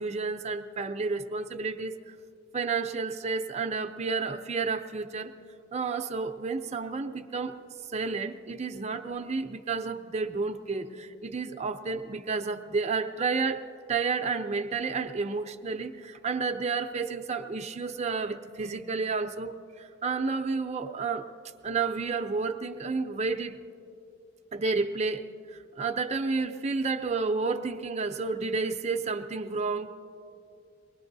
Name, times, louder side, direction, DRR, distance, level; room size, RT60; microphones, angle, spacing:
voice 1, 0.0-2.2 2.5-5.3 5.7-7.6 7.9-13.6 13.9-21.3 21.6-23.6 24.5-29.9, right 4 dB, 35° right, 7 dB, 0.5 m, -31 dB
23.5 x 19.5 x 2.7 m, 2.6 s
head